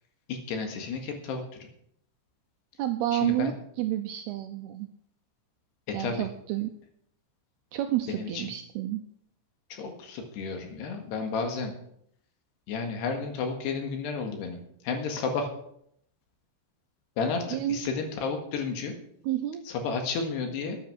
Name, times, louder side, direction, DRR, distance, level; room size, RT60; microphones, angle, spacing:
voice 1, 0.3-1.4 3.1-3.6 5.9-6.2 8.2-8.5 9.7-11.7 12.7-14.6 14.8-15.5 17.2-18.9 19.7-20.8, left 4 dB, 70° left, 5 dB, 3.6 m, -32 dB
voice 2, 2.8-4.9 5.9-6.7 7.7-9.0 17.5-17.9 19.2-19.6, right 13 dB, 80° right, 6 dB, 2.4 m, -30 dB
13.0 x 9.7 x 6.0 m, 0.70 s
omnidirectional pair, 5.3 m